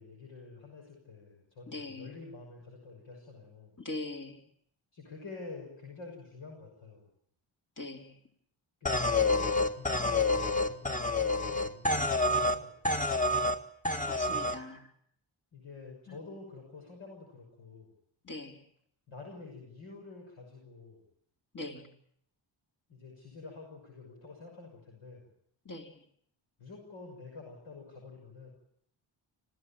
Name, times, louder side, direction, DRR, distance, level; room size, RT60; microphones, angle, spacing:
voice 1, 0.0-3.8 4.9-7.0 8.8-13.0 15.5-17.9 19.1-21.0 22.9-25.3 26.6-28.5, left 3 dB, 70° left, 0 dB, 6.3 m, -48 dB
voice 2, 1.7-2.1 3.8-4.4 7.8-8.2 14.1-14.9 16.1-16.2 18.2-18.6 21.5-21.9 25.7-26.0, left 2 dB, 40° left, 3 dB, 3.9 m, -41 dB
sound 1, 8.9-12.6 12.9-13.6 13.9-14.6, left 2 dB, 15° left, 1.8 m, -28 dB
26.0 x 16.0 x 8.7 m, 0.68 s
cardioid pair, 65°, 50 cm